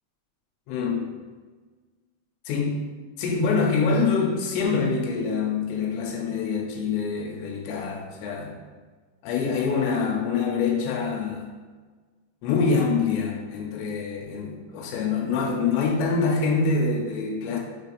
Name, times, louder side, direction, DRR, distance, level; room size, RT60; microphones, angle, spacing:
voice 1, 0.7-1.1 2.5-2.8 3.2-8.6 9.2-11.5 12.4-17.6, left 4 dB, 90° left, 0 dB, 2.7 m, -25 dB
6.4 x 2.5 x 3.1 m, 1.4 s
omnidirectional pair, 4.8 m